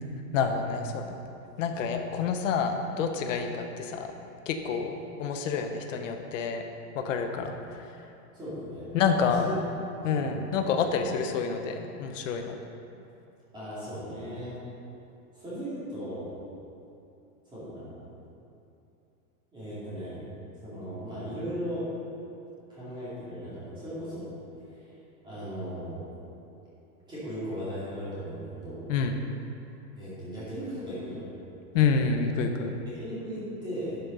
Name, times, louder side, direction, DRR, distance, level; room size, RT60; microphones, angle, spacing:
voice 1, 0.3-1.1 1.6-4.1 4.5-6.6 6.9-7.5 8.9-9.5 10.0-12.6 28.9-29.2 31.7-32.7, left 5 dB, 55° left, 5 dB, 1.0 m, -28 dB
voice 2, 8.3-9.6 10.0-10.4 13.5-14.6 15.3-16.3 17.5-18.0 19.5-20.2 20.6-21.9 22.7-24.3 24.6-25.0 25.2-26.0 27.1-28.9 30.0-31.2 32.8-34.0, equal, 10° right, -11 dB, 2.4 m, -37 dB
11.0 x 6.7 x 5.4 m, 2.8 s
supercardioid pair, 180°, 46 cm